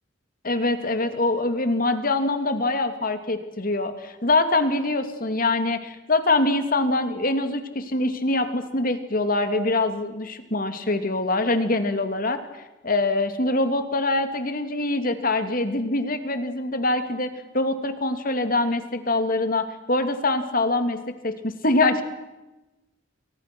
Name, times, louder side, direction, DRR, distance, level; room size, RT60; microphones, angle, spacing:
voice 1, 0.4-12.4 12.8-17.3 17.5-22.0, left 2 dB, 45° left, 8 dB, 2.6 m, -24 dB
29.5 x 24.0 x 6.2 m, 1.0 s
head